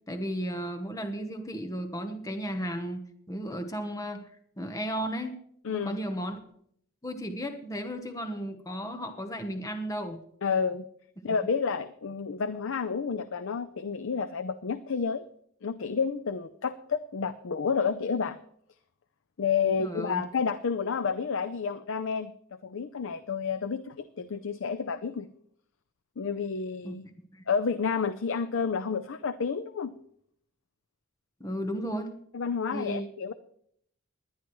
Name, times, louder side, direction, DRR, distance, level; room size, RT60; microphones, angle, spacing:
voice 1, 0.1-4.3 4.6-5.4 5.7-6.4 7.0-10.2 19.7-20.2 26.8-27.4 31.4-32.2 32.7-33.1, equal, 15° left, 6 dB, 1.0 m, -34 dB
voice 2, 5.6-6.0 10.4-10.8 11.2-15.3 15.6-18.4 19.4-25.3 26.2-27.0 27.5-29.9 32.3-33.3, left 5 dB, 65° left, 11 dB, 0.5 m, -30 dB
21.0 x 10.5 x 3.1 m, 0.68 s
head